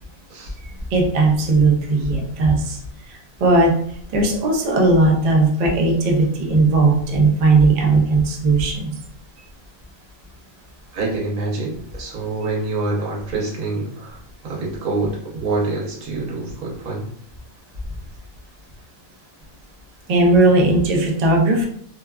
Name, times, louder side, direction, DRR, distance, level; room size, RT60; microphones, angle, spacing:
voice 1, 0.9-2.8 3.1-3.7 4.1-8.9 20.1-21.7, right 3 dB, 65° right, 0 dB, 0.4 m, -17 dB
voice 2, 10.9-14.2 14.4-17.1, right 3 dB, 90° right, -3 dB, 1.3 m, -26 dB
2.9 x 2.2 x 2.2 m, 0.66 s
omnidirectional pair, 1.4 m